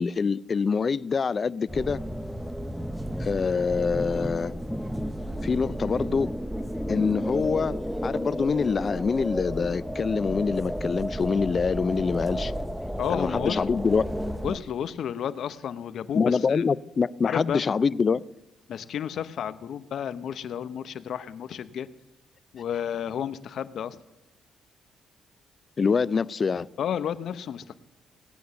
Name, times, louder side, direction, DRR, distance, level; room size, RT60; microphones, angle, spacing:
voice 1, 0.0-2.0 3.2-4.5 5.4-6.3 6.9-12.5 13.1-14.1 16.1-18.2 25.8-26.7, left 5 dB, 40° left, 0.4 m, -25 dB
sound 1, 1.7-14.6, equal, ahead, 0.7 m, -32 dB
voice 2, 13.0-13.6 14.4-16.6 17.2-17.8 18.7-21.9 22.5-24.0 26.8-27.7, left 9 dB, 65° left, 0.8 m, -32 dB
17.5 x 9.3 x 7.0 m
cardioid pair, 90°, 0 cm